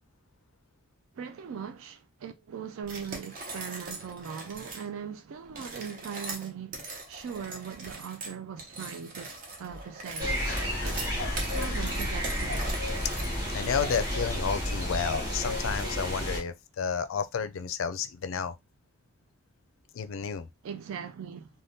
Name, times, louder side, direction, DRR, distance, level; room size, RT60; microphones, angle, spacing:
voice 1, 1.1-6.8 7.1-10.4 10.8-12.7 20.6-21.5, right 7 dB, 75° right, 0.4 m, -40 dB
sound 1, 2.8-4.9 5.5-14.3, right 3 dB, 40° right, 0.7 m, -41 dB
sound 2, 10.2-16.4, equal, 15° right, 1.1 m, -31 dB
voice 2, 10.4-11.4 13.0-13.1 13.5-18.6 19.9-20.5, left 6 dB, 70° left, 0.4 m, -32 dB
3.4 x 2.2 x 2.6 m
head